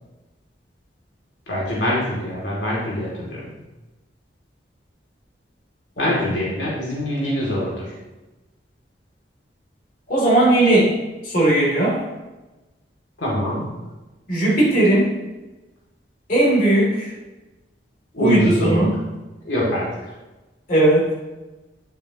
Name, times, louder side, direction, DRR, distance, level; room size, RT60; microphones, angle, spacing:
voice 1, 1.5-3.4 6.0-7.9 13.2-13.6 18.1-18.8 19.4-19.9, left 1 dB, 85° left, -5 dB, 2.5 m, -23 dB
voice 2, 10.1-11.0 11.2-12.0 14.3-15.1 16.3-17.1 18.2-19.0 20.7-21.1, right 1 dB, 50° left, -5 dB, 2.8 m, -17 dB
10.5 x 6.7 x 2.9 m, 1.1 s
head